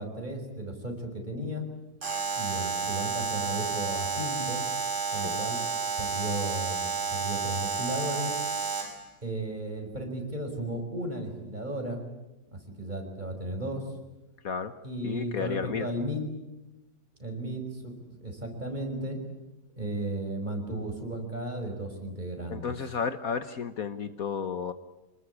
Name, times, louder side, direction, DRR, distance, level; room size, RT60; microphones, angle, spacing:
voice 1, 0.0-1.7 2.3-4.6 5.1-5.6 6.0-8.4 9.2-12.0 12.5-13.9 14.8-16.2 17.2-19.2 19.8-22.6, right 1 dB, 25° right, 3 dB, 5.5 m, -34 dB
Alarm, 2.0-9.0, right 5 dB, 45° right, 3.3 m, -31 dB
voice 2, 14.4-14.7 15.0-15.9 22.5-24.7, left 6 dB, 60° left, 11 dB, 1.5 m, -32 dB
26.5 x 20.5 x 9.8 m, 1.0 s
omnidirectional pair, 1.8 m